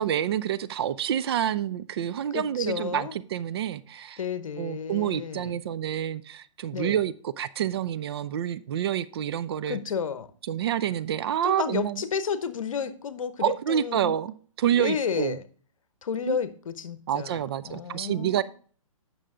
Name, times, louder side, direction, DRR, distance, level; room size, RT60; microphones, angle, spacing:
voice 1, 0.0-4.2 4.6-9.8 10.5-12.0 13.4-15.4 16.3-16.4 17.1-18.4, right 10 dB, 45° right, 15 dB, 0.5 m, -28 dB
voice 2, 2.3-3.1 4.2-5.6 6.7-7.0 9.7-10.3 11.4-14.1 14.8-15.4 16.0-18.4, left 6 dB, 70° left, 13 dB, 0.9 m, -31 dB
8.7 x 6.4 x 3.7 m, 0.44 s
hypercardioid pair, 140°, 18 cm